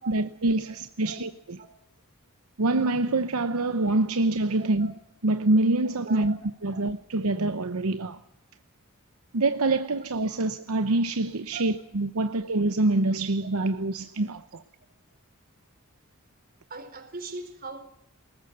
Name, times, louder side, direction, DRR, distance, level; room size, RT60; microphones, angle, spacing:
voice 1, 0.1-1.3 2.6-4.9 5.2-6.4 6.6-8.2 9.3-14.6, right 2 dB, 75° right, 0.9 m, -25 dB
voice 2, 4.6-4.9 6.1-6.3 6.7-6.8 11.5-11.7 16.7-17.8, right 3 dB, 45° right, 4.3 m, -40 dB
22.0 x 19.5 x 7.9 m
head